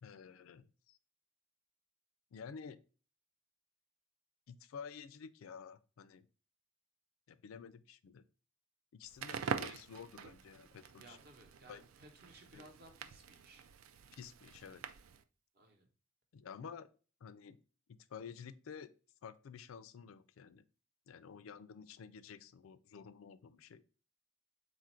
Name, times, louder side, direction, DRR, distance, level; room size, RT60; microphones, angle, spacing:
voice 1, 0.0-1.0 2.3-2.8 4.5-6.3 7.3-8.2 8.9-11.2 11.7-11.8 12.5-12.7 14.1-14.8 16.3-16.9 17.2-17.6 17.9-18.9 19.2-20.6 21.1-23.8, left 6 dB, 85° left, 14 dB, 0.4 m, -51 dB
Crackle, 9.1-15.2, right 7 dB, 85° right, 0.4 m, -45 dB
voice 2, 11.0-13.7 15.5-15.9, right 2 dB, 50° right, 5 dB, 0.8 m, -59 dB
4.1 x 2.5 x 4.2 m, 0.36 s
head